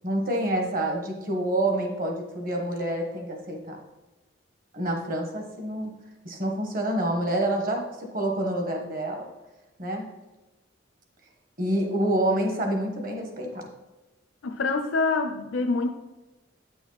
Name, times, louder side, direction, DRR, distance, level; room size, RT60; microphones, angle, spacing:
voice 1, 0.0-3.8 4.7-5.9 6.2-9.3 9.8-10.1 11.6-13.6, right 1 dB, 45° right, 3 dB, 1.3 m, -27 dB
voice 2, 14.4-15.9, left 3 dB, 75° left, 5 dB, 0.5 m, -25 dB
8.8 x 6.1 x 4.0 m, 1.1 s
head